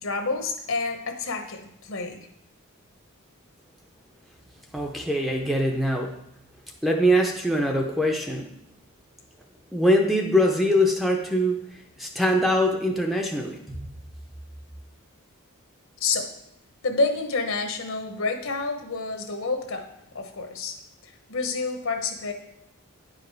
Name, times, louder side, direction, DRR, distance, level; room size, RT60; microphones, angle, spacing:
voice 1, 0.0-2.3 16.0-16.3 16.8-19.9 20.1-20.8 21.0-22.3, left 3 dB, 65° left, 5 dB, 1.0 m, -28 dB
voice 2, 4.7-6.2 6.8-8.5 9.7-11.6 12.0-13.9, equal, ahead, 1 dB, 0.6 m, -23 dB
9.6 x 5.0 x 4.7 m, 0.77 s
head